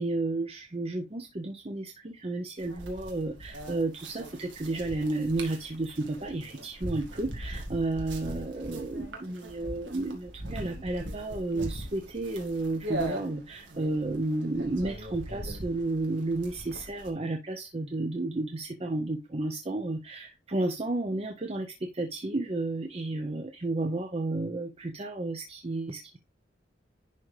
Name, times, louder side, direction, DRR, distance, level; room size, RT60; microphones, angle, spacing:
voice 1, 0.0-26.2, right 2 dB, 30° right, 4 dB, 0.6 m, -32 dB
sound 1, 2.6-17.1, right 1 dB, 75° right, 1.9 m, -40 dB
11.0 x 3.7 x 3.2 m, 0.24 s
head